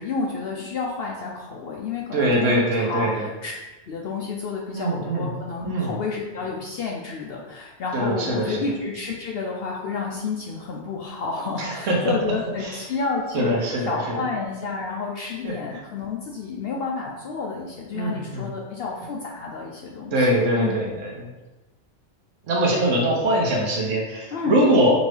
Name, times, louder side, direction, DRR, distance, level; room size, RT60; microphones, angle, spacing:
voice 1, 0.0-3.5 3.9-13.5 13.8-20.3 20.6-21.0 24.3-24.6, left 4 dB, 65° left, -1 dB, 0.7 m, -30 dB
voice 2, 2.1-3.3 4.7-5.3 5.6-5.9 7.9-8.6 11.6-12.1 12.6-12.8 13.3-14.2 15.4-15.8 17.9-18.5 20.1-20.9 22.5-24.9, right 1 dB, 85° right, -2 dB, 1.2 m, -22 dB
5.2 x 2.7 x 3.2 m, 1.1 s
omnidirectional pair, 1.3 m